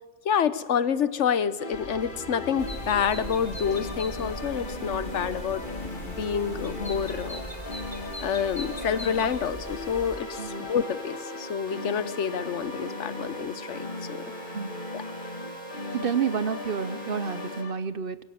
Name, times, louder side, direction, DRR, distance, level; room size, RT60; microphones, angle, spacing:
voice 1, 0.2-7.4 8.2-14.2 14.9-15.0, left 7 dB, 75° left, 16 dB, 1.2 m, -28 dB
sound 1, 1.6-17.7, left 3 dB, 45° left, 1.6 m, -38 dB
sound 2, 1.7-17.6, right 4 dB, 70° right, 2.3 m, -44 dB
sound 3, 2.6-10.2, equal, 20° left, 2.4 m, -40 dB
voice 2, 10.4-10.7 14.5-14.7 15.9-18.2, right 6 dB, 55° right, 15 dB, 0.9 m, -29 dB
22.0 x 16.0 x 9.3 m, 1.4 s
omnidirectional pair, 1.2 m